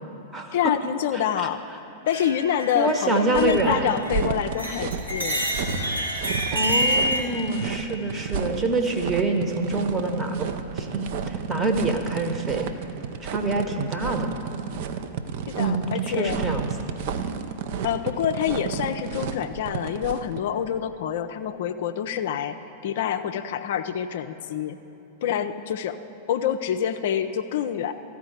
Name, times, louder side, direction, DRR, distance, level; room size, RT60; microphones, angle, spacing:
voice 1, 0.5-1.6 2.1-5.4 13.7-13.8 15.5-16.4 17.8-22.6 22.8-24.8 25.2-26.0 26.3-27.9, left 9 dB, 55° left, 9 dB, 0.3 m, -27 dB
sound 1, 2.1-4.2 4.5-7.2, equal, 90° right, 2.3 m, -28 dB
voice 2, 2.7-4.0 6.5-10.5 10.8-12.7 13.2-14.4 15.6-16.7, right 2 dB, 15° right, 4 dB, 0.9 m, -26 dB
sound 2, 3.3-20.4, right 6 dB, 50° right, 0.5 m, -32 dB
14.0 x 4.7 x 7.9 m, 2.8 s
figure-of-eight pair, 95°, 0 cm